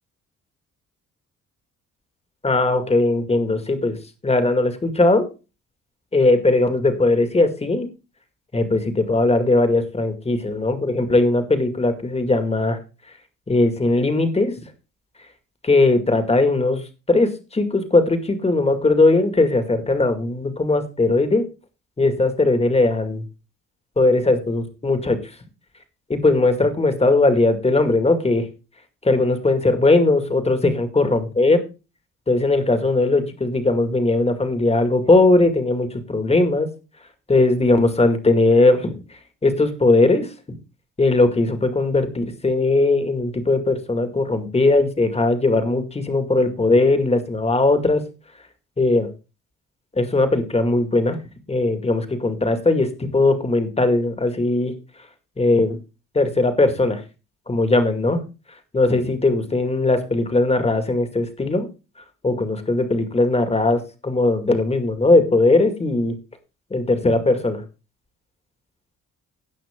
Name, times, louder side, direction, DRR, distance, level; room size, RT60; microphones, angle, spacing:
voice 1, 2.4-4.0 4.2-5.3 6.1-7.9 8.5-12.8 13.5-14.5 15.6-16.8 17.1-21.5 22.0-23.2 24.0-25.2 26.1-28.5 29.0-31.6 32.3-36.7 37.3-39.0 39.4-40.6 41.0-48.0 48.8-49.1 50.0-51.2 51.5-54.7 55.4-55.8 56.1-57.0 57.5-58.2 58.7-61.7 62.2-66.2 66.7-67.6, left 2 dB, 20° left, 8 dB, 2.1 m, -19 dB
17.0 x 5.8 x 3.7 m, 0.30 s
cardioid pair, 90°, 30 cm